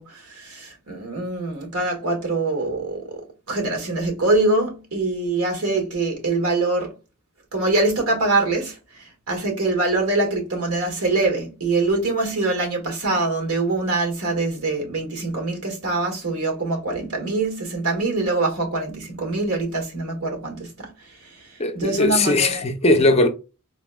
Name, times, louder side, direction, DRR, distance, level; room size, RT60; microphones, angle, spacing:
voice 1, 0.0-3.2 3.5-6.9 7.5-20.9 21.3-21.4 21.7-22.6, right 2 dB, 70° right, 1.5 m, -24 dB
voice 2, 21.6-23.3, left 2 dB, 30° left, 0.5 m, -19 dB
4.1 x 3.0 x 2.2 m
head